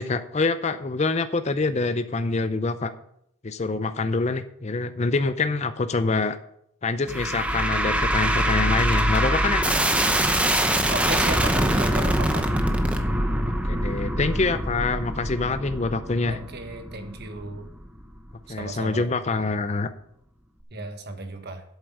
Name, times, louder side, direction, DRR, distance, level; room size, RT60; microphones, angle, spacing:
voice 1, 0.0-2.9 3.4-6.4 6.8-9.6 13.6-16.4 18.5-19.9, left 3 dB, 30° left, 11 dB, 0.5 m, -25 dB
sound 1, 7.1-18.3, right 1 dB, 5° right, 0.7 m, -24 dB
voice 2, 10.9-12.5 16.2-17.7 18.5-19.1 20.7-21.6, right 2 dB, 50° right, 7 dB, 1.3 m, -34 dB
8.2 x 7.7 x 6.4 m, 0.73 s
head